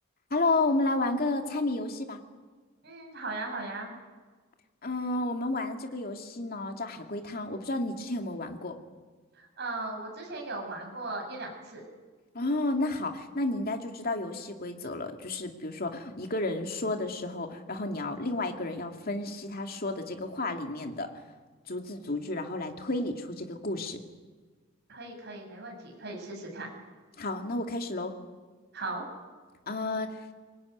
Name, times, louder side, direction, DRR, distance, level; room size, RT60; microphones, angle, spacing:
voice 1, 0.3-2.2 4.8-8.8 12.3-21.1 21.7-24.0 27.2-28.1 29.7-30.3, left 2 dB, 50° left, 4 dB, 2.5 m, -31 dB
voice 2, 2.8-3.9 9.4-11.8 24.9-26.7 28.7-29.0, right 2 dB, 55° right, 1 dB, 7.3 m, -37 dB
24.5 x 22.0 x 9.6 m, 1.4 s
head